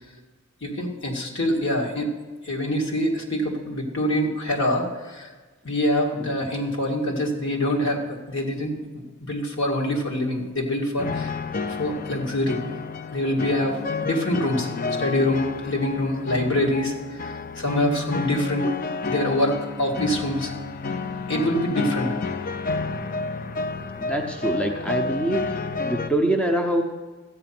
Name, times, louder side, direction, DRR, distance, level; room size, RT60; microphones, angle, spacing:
voice 1, 0.6-2.1 2.4-5.3 5.6-8.8 9.2-11.3 11.8-12.6 13.1-14.7 15.0-18.8 19.1-20.5 21.3-22.2, left 1 dB, 60° left, 0 dB, 2.2 m, -25 dB
sound 1, 11.0-26.1, left 4 dB, 40° left, 0.5 m, -30 dB
voice 2, 24.0-26.8, right 1 dB, 5° left, 2 dB, 0.7 m, -25 dB
13.5 x 8.8 x 5.9 m, 1.3 s
head